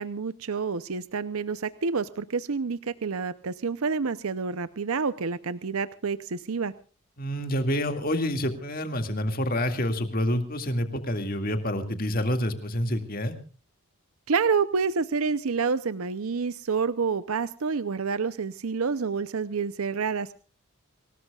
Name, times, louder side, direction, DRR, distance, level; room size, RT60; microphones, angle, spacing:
voice 1, 0.0-6.7 14.3-20.4, right 5 dB, 75° right, 14 dB, 0.7 m, -28 dB
voice 2, 7.2-13.3, equal, 40° left, 7 dB, 2.2 m, -28 dB
26.0 x 19.0 x 2.4 m, 0.36 s
head